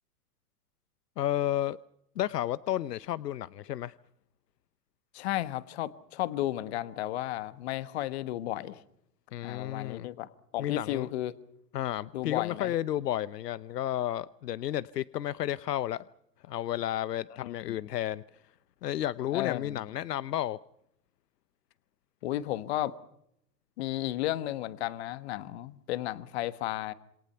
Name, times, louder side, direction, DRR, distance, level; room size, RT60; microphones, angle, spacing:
voice 1, 1.2-1.8 2.2-3.9 9.3-10.1 10.6-11.1 11.7-16.0 16.4-18.2 18.8-20.6, left 12 dB, 80° left, 0.8 m, -32 dB
voice 2, 5.1-8.8 9.4-10.3 10.5-11.3 12.1-12.7 17.4-17.8 19.3-19.8 22.2-23.0 23.8-26.9, left 14 dB, 40° left, 1.3 m, -33 dB
27.5 x 23.0 x 5.7 m
hypercardioid pair, 150°, 48 cm